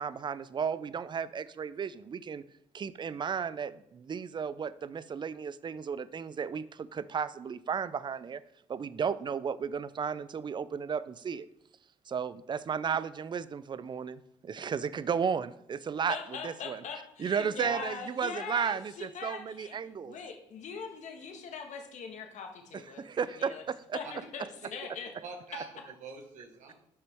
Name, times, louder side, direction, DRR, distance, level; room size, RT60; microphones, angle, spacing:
voice 1, 0.0-2.4 2.7-8.4 8.7-11.5 12.1-16.2 16.4-16.8 17.2-20.2 22.7-24.0, right 6 dB, 35° right, 17 dB, 0.4 m, -34 dB
voice 2, 16.1-23.1 23.4-23.6 23.9-24.4 24.7-25.1, left 6 dB, 65° left, 3 dB, 1.4 m, -41 dB
voice 3, 25.2-26.7, right 5 dB, 70° right, 2 dB, 1.4 m, -44 dB
8.0 x 5.9 x 3.5 m, 0.74 s
supercardioid pair, 60°, 13 cm